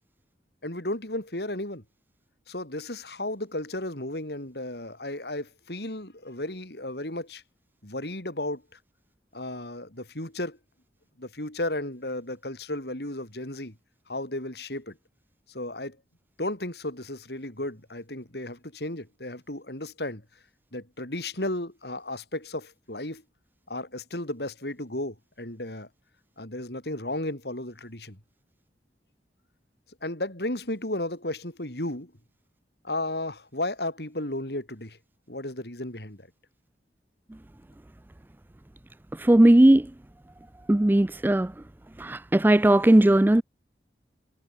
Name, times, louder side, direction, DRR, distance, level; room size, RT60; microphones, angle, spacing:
voice 1, 0.6-1.8 2.5-7.4 7.8-8.8 9.3-10.6 11.2-13.7 14.1-15.0 15.5-16.0 16.4-20.2 20.7-23.2 23.7-25.9 26.4-28.2 30.0-32.1 32.8-35.0 35.3-36.3, left 1 dB, 70° left, 4.9 m, -34 dB
voice 2, 39.2-39.9 40.7-41.5 42.0-43.4, right 1 dB, 10° right, 0.3 m, -18 dB
head